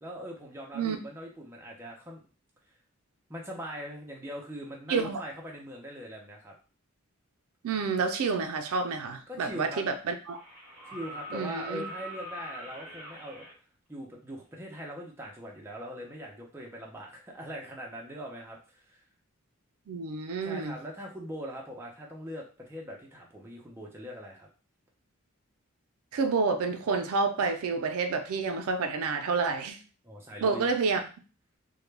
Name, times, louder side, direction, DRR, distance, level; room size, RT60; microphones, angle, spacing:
voice 1, 0.0-2.3 3.3-6.6 9.3-9.8 10.9-13.5 13.9-19.0 20.4-24.5 30.0-30.7, equal, 10° right, -2 dB, 0.4 m, -41 dB
voice 2, 4.9-5.2 7.6-10.4 11.3-11.9 19.9-20.8 26.1-29.8 30.4-31.0, right 4 dB, 85° right, 6 dB, 0.4 m, -29 dB
sound 1, 9.2-9.3 10.3-13.5 15.3-15.4, right 1 dB, 5° left, 1.1 m, -43 dB
2.1 x 2.1 x 3.2 m, 0.36 s
head